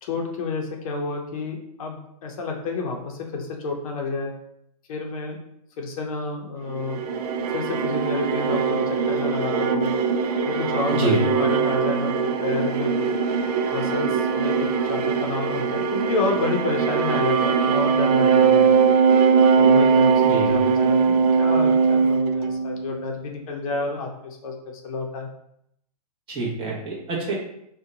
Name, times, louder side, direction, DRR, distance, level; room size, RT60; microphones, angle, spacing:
voice 1, 0.0-4.3 4.9-5.4 5.8-7.0 7.5-9.9 10.4-13.1 13.7-18.7 19.6-25.3, left 3 dB, 60° left, 2 dB, 0.6 m, -29 dB
sound 1, 6.8-23.1, right 5 dB, 70° right, 0.4 m, -21 dB
voice 2, 26.3-27.3, right 3 dB, 25° right, -4 dB, 0.9 m, -26 dB
2.7 x 2.2 x 3.7 m, 0.75 s
hypercardioid pair, 135°, 21 cm